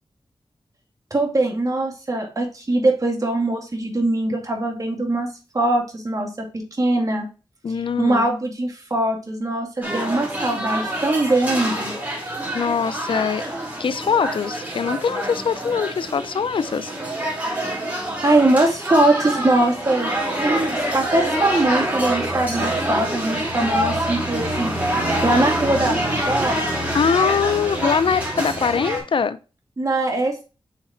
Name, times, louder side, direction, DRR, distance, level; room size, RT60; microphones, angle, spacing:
voice 1, 1.1-5.3 5.5-7.3 8.0-11.9 17.8-20.1 20.4-26.6 29.8-30.4, right 2 dB, 40° right, 2.2 m, -22 dB
voice 2, 7.6-8.3 12.5-13.5 13.8-16.9 26.9-29.4, left 6 dB, 65° left, 0.4 m, -22 dB
sound 1, 9.8-29.0, right 1 dB, 20° right, 3.4 m, -26 dB
6.5 x 4.0 x 4.3 m
wide cardioid pair, 65°, 9 cm